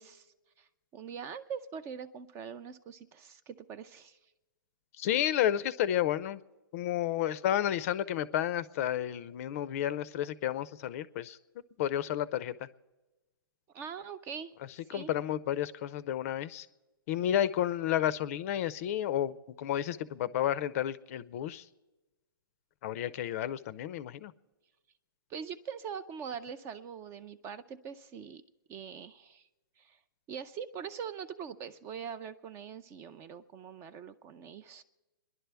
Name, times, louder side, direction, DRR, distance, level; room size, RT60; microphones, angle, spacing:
voice 1, 0.0-4.2 13.7-14.5 14.9-15.1 25.3-28.4 28.7-29.5 29.8-30.0 30.3-34.8, right 7 dB, 20° right, 13 dB, 0.5 m, -43 dB
voice 2, 5.0-6.4 6.7-11.4 11.8-12.7 14.9-16.7 17.1-21.6 22.8-24.3, left 11 dB, 35° left, 17 dB, 0.5 m, -31 dB
29.0 x 11.0 x 3.4 m, 1.1 s
hypercardioid pair, 140°, 13 cm